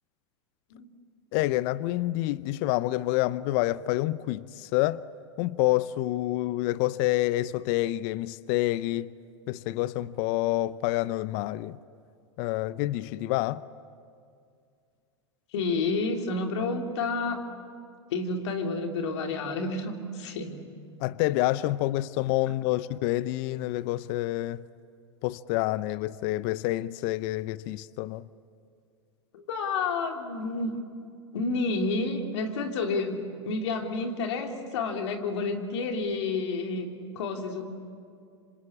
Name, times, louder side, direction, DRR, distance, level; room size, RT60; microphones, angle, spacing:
voice 1, 1.3-5.0 5.4-9.1 9.5-11.8 12.4-13.6 21.0-24.6 25.2-28.3, left 17 dB, 55° left, 0.6 m, -28 dB
voice 2, 15.5-17.5 18.1-20.6 29.3-30.8 31.3-36.9 37.1-37.6, left 3 dB, 70° left, 3.2 m, -30 dB
26.5 x 26.0 x 8.7 m
hypercardioid pair, 100°, 15 cm